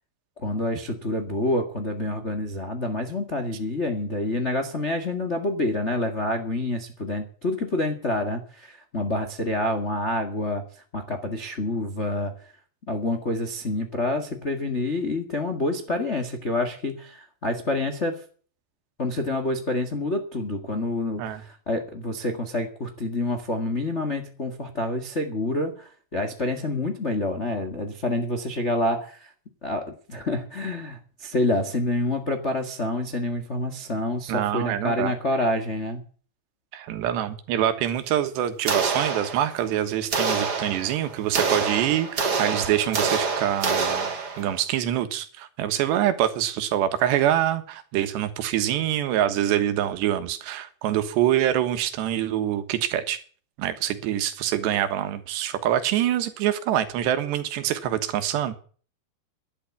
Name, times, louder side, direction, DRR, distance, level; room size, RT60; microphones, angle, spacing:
voice 1, 0.4-10.6 10.9-12.5 12.9-18.2 19.0-29.3 29.6-36.0, left 2 dB, 90° left, 0.6 m, -27 dB
voice 2, 34.3-35.1 36.7-44.1 44.4-53.2 53.6-58.5, right 11 dB, 85° right, 3.6 m, -25 dB
sound 1, 38.7-39.7 40.1-44.6, right 4 dB, 40° right, 1.6 m, -27 dB
11.5 x 11.5 x 7.1 m
omnidirectional pair, 4.8 m